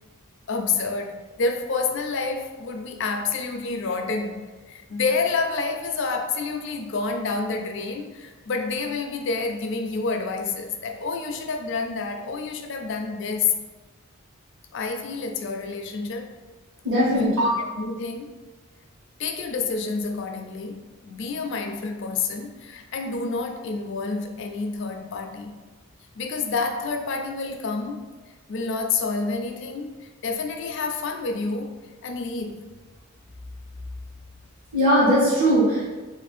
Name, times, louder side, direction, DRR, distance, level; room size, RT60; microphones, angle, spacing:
voice 1, 0.5-13.6 14.7-16.3 17.1-17.3 17.6-18.3 19.2-25.6 26.2-28.1 28.5-32.6, left 4 dB, 55° left, 0.4 m, -28 dB
voice 2, 16.8-17.6 34.7-35.8, equal, 60° right, 1.1 m, -19 dB
3.2 x 2.6 x 4.2 m
head